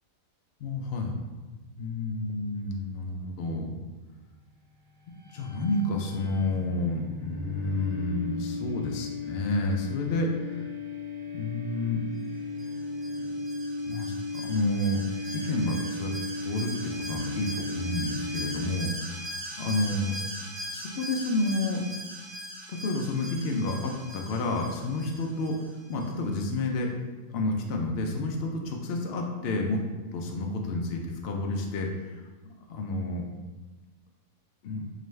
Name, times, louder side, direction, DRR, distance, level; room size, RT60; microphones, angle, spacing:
voice 1, 0.6-1.1 1.8-3.8 5.3-10.7 11.3-12.0 13.8-15.0 15.3-16.1 16.4-19.2 19.6-20.2 20.7-21.8 22.7-25.6 25.9-26.9 27.3-29.8 30.1-33.3 34.6-34.9, left 2 dB, 75° left, 1 dB, 0.5 m, -30 dB
sound 1, 5.1-19.1, left 2 dB, 70° right, 1.0 m, -36 dB
Alarm, 12.6-26.1 26.4-26.5, equal, 50° right, 0.7 m, -41 dB
3.8 x 3.2 x 3.2 m, 1.2 s
omnidirectional pair, 1.6 m